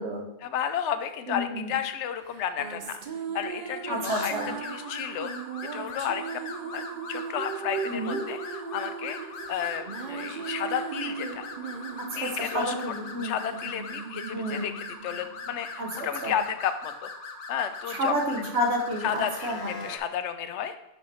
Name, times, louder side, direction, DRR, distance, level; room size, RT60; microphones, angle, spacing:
voice 1, 0.4-3.0 3.3-5.3 5.7-6.4 6.7-6.8 7.1-11.5 12.2-12.7 13.2-17.1 17.5-18.4 19.0-20.7, left 9 dB, 85° left, 10 dB, 0.9 m, -32 dB
voice 2, 1.3-1.7 3.9-4.6 7.9-8.2 12.1-13.3 14.3-14.7 15.8-15.9 16.2-16.3 17.9-19.8, equal, 70° right, 1 dB, 1.4 m, -30 dB
sound 1, 2.3-16.0, right 6 dB, 50° right, 0.7 m, -37 dB
sound 2, 4.0-20.0, left 3 dB, 55° left, 0.9 m, -41 dB
5.5 x 5.3 x 4.2 m, 0.87 s
omnidirectional pair, 1.2 m